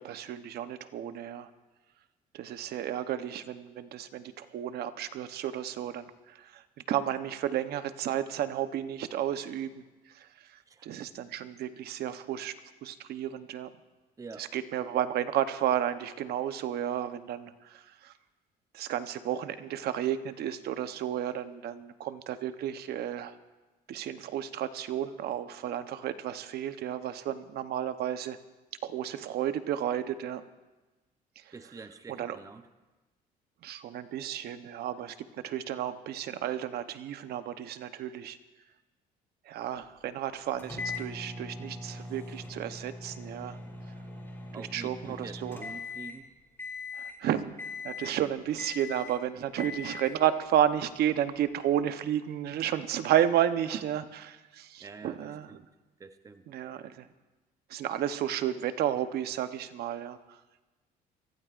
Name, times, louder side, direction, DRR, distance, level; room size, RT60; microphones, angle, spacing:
voice 1, 0.0-1.5 2.3-6.6 6.9-9.7 10.1-12.5 12.8-13.7 14.4-18.1 18.7-23.3 23.9-28.4 28.8-30.4 32.1-32.4 33.6-38.4 39.5-43.6 44.7-45.6 47.0-47.5 47.8-55.5 56.5-57.1 57.7-60.2, right 10 dB, 70° right, 11 dB, 0.9 m, -32 dB
voice 2, 14.2-14.5 31.5-32.7 44.5-46.3 54.8-55.7 56.0-56.5, right 4 dB, 20° right, 9 dB, 0.7 m, -47 dB
sound 1, 40.6-46.2 46.6-47.2 47.6-48.2 48.6-49.2 49.6-50.2, left 3 dB, 15° left, 3.5 m, -41 dB
24.5 x 15.5 x 2.5 m, 1.1 s
cardioid pair, 110°, 17 cm